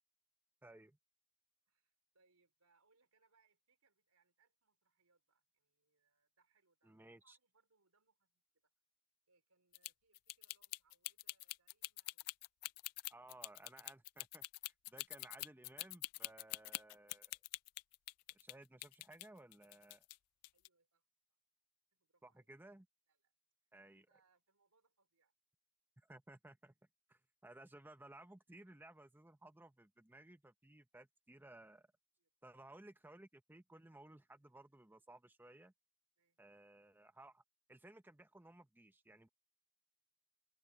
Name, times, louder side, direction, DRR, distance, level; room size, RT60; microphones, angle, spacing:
voice 1, 0.6-1.0 6.8-7.4 13.1-17.4 18.3-20.0 22.2-22.9 23.7-24.1 26.0-26.7 27.1-31.9 32.4-35.7 36.4-37.4 37.7-39.3, right 1 dB, 10° right, 0.6 m, -59 dB
voice 2, 1.7-8.7 9.3-12.4 19.9-20.1 20.5-21.0 21.9-22.5 23.1-23.3 23.9-25.3 32.2-32.6 36.2-36.4, right 4 dB, 90° right, 4.4 m, -79 dB
sound 1, 9.7-18.5 18.8-20.2 20.4-20.7, left 20 dB, 90° left, 0.3 m, -45 dB
head